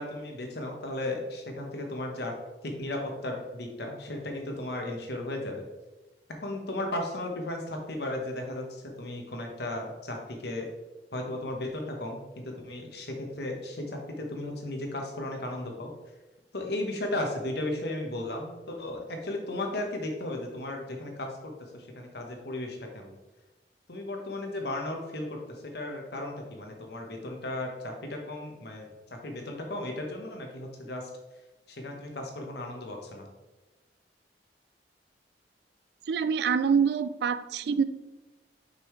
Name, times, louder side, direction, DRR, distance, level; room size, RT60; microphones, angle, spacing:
voice 1, 0.0-2.3 2.6-5.6 6.4-10.7 11.1-15.9 16.5-23.1 23.9-31.1 31.7-33.3, left 1 dB, 65° left, 2 dB, 1.3 m, -35 dB
voice 2, 36.1-37.8, right 6 dB, 65° right, 13 dB, 0.3 m, -25 dB
6.7 x 5.5 x 3.2 m, 1.1 s
head